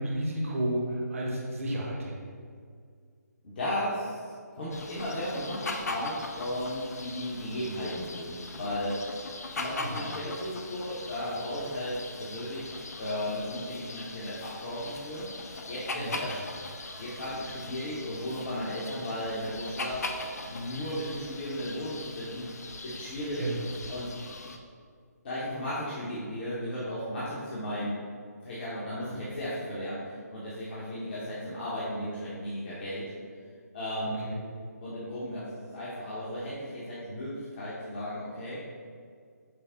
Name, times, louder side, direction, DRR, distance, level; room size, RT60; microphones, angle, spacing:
voice 1, 0.0-2.3 9.8-10.0 15.9-16.1 23.4-23.6 28.9-29.1 34.2-34.4, right 1 dB, 50° right, -2 dB, 0.9 m, -32 dB
voice 2, 3.4-9.0 9.5-16.4 17.0-23.4 23.9-24.1 25.2-28.0 28.4-33.0 33.7-34.2 34.8-38.6, equal, 35° left, -9 dB, 0.8 m, -35 dB
sound 1, 4.7-24.6, left 2 dB, 65° left, 0.4 m, -40 dB
5.9 x 2.0 x 3.6 m, 2.1 s
figure-of-eight pair, 145°, 9 cm